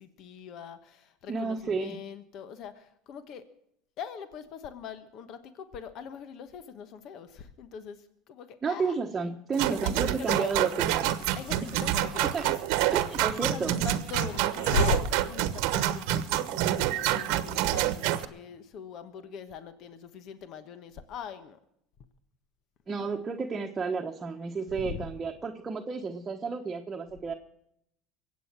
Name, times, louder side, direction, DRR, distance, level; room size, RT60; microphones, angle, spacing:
voice 1, 0.0-3.4 4.0-9.0 9.5-10.7 11.4-12.6 12.9-21.6 24.8-25.0, left 7 dB, 55° left, 10 dB, 1.2 m, -42 dB
voice 2, 1.3-2.0 8.6-11.1 12.3-12.4 12.9-13.7 22.9-27.3, right 4 dB, 25° right, 2 dB, 1.1 m, -32 dB
sound 1, 9.6-18.2, right 14 dB, 75° right, 1.0 m, -27 dB
Hiss, 10.8-16.3, left 3 dB, 90° left, 1.5 m, -35 dB
23.0 x 8.5 x 6.1 m, 0.76 s
supercardioid pair, 105°, 0 cm